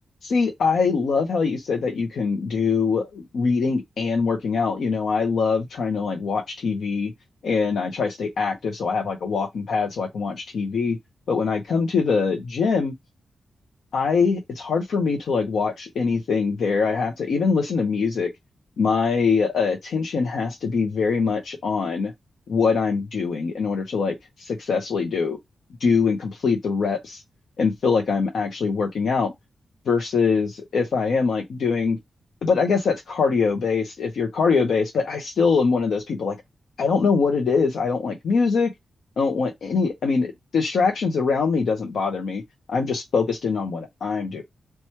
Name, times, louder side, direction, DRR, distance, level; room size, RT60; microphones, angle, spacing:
voice 1, 0.2-7.1 7.4-11.0 11.3-12.9 13.9-18.3 18.8-22.1 22.5-25.4 25.8-27.2 27.6-29.3 29.9-32.0 32.4-36.4 36.8-38.7 39.2-42.4 42.7-44.4, left 5 dB, 75° left, 0.7 m, -23 dB
3.0 x 2.3 x 4.2 m
wide cardioid pair, 135°, 0 cm